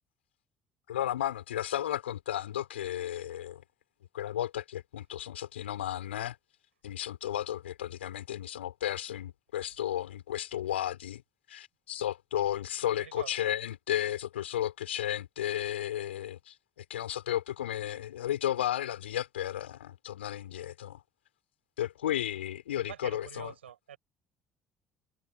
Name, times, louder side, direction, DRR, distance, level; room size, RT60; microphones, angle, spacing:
voice 1, 0.9-3.6 4.1-6.4 6.8-11.2 11.5-16.5 16.9-21.0 21.8-23.5, left 12 dB, 75° left, 5.1 m, -33 dB
voice 2, 12.8-13.5 22.8-24.0, right 10 dB, 80° right, 7.2 m, -46 dB
figure-of-eight pair, 55°, 6 cm